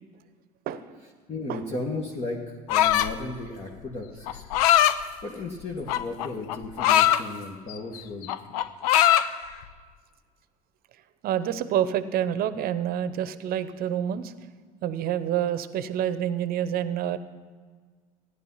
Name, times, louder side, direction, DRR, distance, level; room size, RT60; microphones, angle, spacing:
voice 1, 1.3-4.4 4.9-8.3, left 2 dB, 35° left, -1 dB, 1.7 m, -35 dB
sound 1, 2.7-3.2 4.3-5.0 5.9-7.2 7.7-8.0 8.2-9.3, left 11 dB, 75° left, 0.5 m, -20 dB
voice 2, 11.2-14.3 14.8-17.2, right 10 dB, 50° right, 14 dB, 0.8 m, -27 dB
14.5 x 10.0 x 5.6 m, 1.5 s
hypercardioid pair, 70°, 19 cm